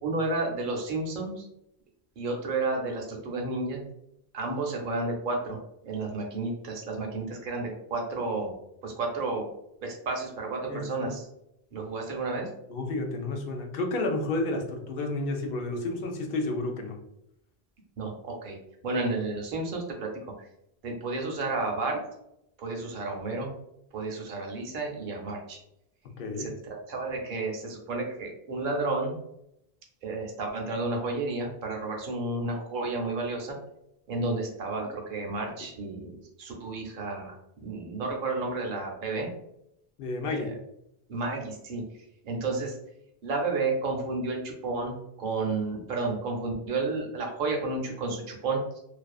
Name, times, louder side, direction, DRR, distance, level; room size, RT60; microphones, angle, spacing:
voice 1, 0.0-1.5 2.2-3.8 4.3-5.6 5.8-8.5 8.8-9.5 9.8-11.3 11.7-12.5 18.0-18.6 18.8-20.1 20.4-20.5 20.8-22.0 22.6-23.5 23.9-25.6 26.4-29.2 30.0-33.5 34.1-39.3 40.3-40.5 41.1-41.8 42.2-42.8 43.2-48.8, right 3 dB, 60° right, 1 dB, 0.7 m, -31 dB
voice 2, 10.7-11.1 12.7-17.0 26.2-26.5 40.0-40.5, left 2 dB, 70° left, 3 dB, 0.7 m, -31 dB
2.4 x 2.3 x 2.3 m, 0.80 s
omnidirectional pair, 1.0 m